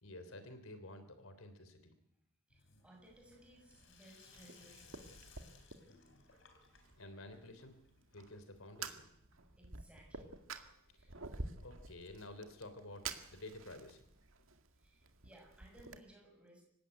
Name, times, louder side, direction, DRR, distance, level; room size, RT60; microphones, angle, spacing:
voice 1, 0.0-1.9 7.0-7.8 8.1-9.1 11.6-14.0, left 2 dB, 80° left, 10 dB, 3.3 m, -51 dB
Sink (filling or washing), 2.5-9.3, left 5 dB, 60° left, 3.8 m, -64 dB
voice 2, 2.5-5.2 9.6-10.4 10.9-11.4 14.8-16.6, right 1 dB, 5° right, 0 dB, 7.0 m, -61 dB
Fire, 3.0-16.0, right 4 dB, 70° right, 2.0 m, -51 dB
26.0 x 16.0 x 9.6 m, 0.80 s
head